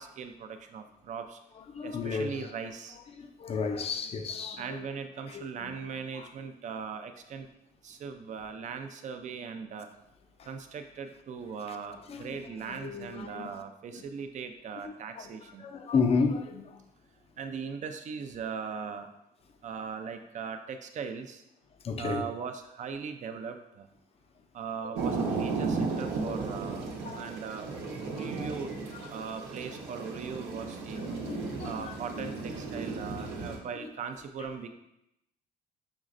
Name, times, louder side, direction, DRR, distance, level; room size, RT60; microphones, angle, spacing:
voice 1, 0.0-1.4 1.8-3.0 4.6-7.5 7.8-9.9 10.5-15.7 17.4-19.1 19.6-21.4 22.0-23.9 24.5-26.8 27.1-27.7 28.0-28.7 29.1-31.0 31.6-34.7, right 6 dB, 45° right, 0.5 m, -39 dB
voice 2, 1.6-2.4 3.2-4.9 5.3-5.9 6.1-6.3 10.4-10.5 12.1-13.6 13.9-14.1 14.8-15.3 15.6-16.8 21.8-22.3 27.0-27.4 28.1-28.6 28.9-29.2 30.9-32.2 33.8-33.9, left 5 dB, 35° left, 0.5 m, -34 dB
sound 1, 25.0-33.6, right 4 dB, 90° right, 0.9 m, -35 dB
6.1 x 3.1 x 2.5 m
cardioid pair, 110°, 17 cm